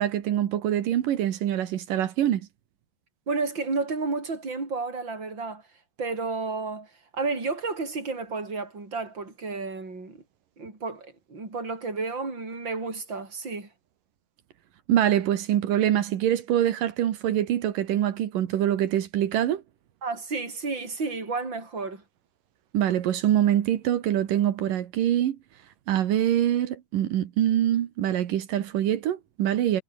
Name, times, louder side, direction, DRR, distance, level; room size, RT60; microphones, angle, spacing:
voice 1, 0.0-2.5 14.9-19.6 22.7-25.4 25.9-29.8, right 11 dB, 75° right, 3.1 m, -24 dB
voice 2, 3.3-5.6 6.0-10.2 10.6-13.7 20.0-22.0, right 4 dB, 30° right, 6.9 m, -31 dB
omnidirectional pair, 3.9 m